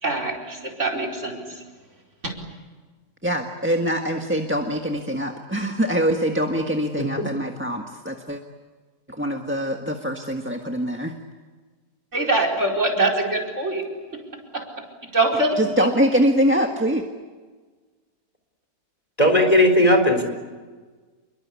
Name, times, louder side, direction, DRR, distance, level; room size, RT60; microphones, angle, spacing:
voice 1, 0.0-1.4 2.2-2.3 12.1-13.8 14.5-14.7 15.1-15.9, right 2 dB, 50° right, 4 dB, 5.1 m, -23 dB
voice 2, 3.2-8.4 9.1-11.1 15.6-17.0, equal, 10° right, 3 dB, 1.5 m, -23 dB
voice 3, 19.2-20.2, left 1 dB, 25° left, 4 dB, 4.2 m, -16 dB
28.5 x 23.0 x 8.4 m, 1.4 s
omnidirectional pair, 1.6 m